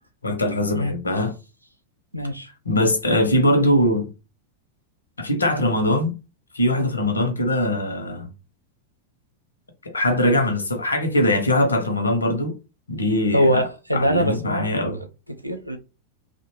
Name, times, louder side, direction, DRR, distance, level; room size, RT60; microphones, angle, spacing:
voice 1, 0.2-1.3 2.7-4.1 5.2-6.1 6.5-8.3 9.8-12.5 12.9-13.6 13.9-15.0, left 1 dB, 75° left, 0.6 m, -21 dB
voice 2, 2.1-2.5 13.3-15.1 15.4-15.8, equal, 90° right, 0.4 m, -23 dB
2.5 x 2.1 x 2.9 m
figure-of-eight pair, 90°, 0 cm